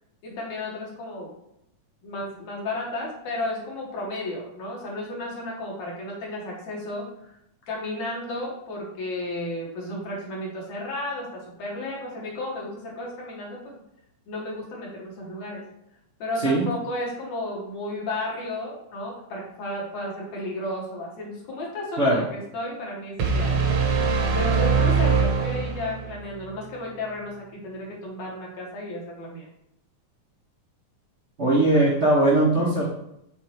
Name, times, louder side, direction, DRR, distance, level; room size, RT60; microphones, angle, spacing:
voice 1, 0.2-1.3 2.0-7.3 7.7-13.7 14.3-15.7 16.2-23.6 24.3-29.5 31.6-32.0, left 1 dB, 65° left, -3 dB, 2.5 m, -33 dB
sound 1, 23.2-26.2, right 5 dB, 65° right, 1.7 m, -22 dB
voice 2, 31.4-32.9, right 1 dB, 80° right, -6 dB, 0.6 m, -20 dB
6.6 x 3.7 x 4.4 m, 0.78 s
omnidirectional pair, 3.6 m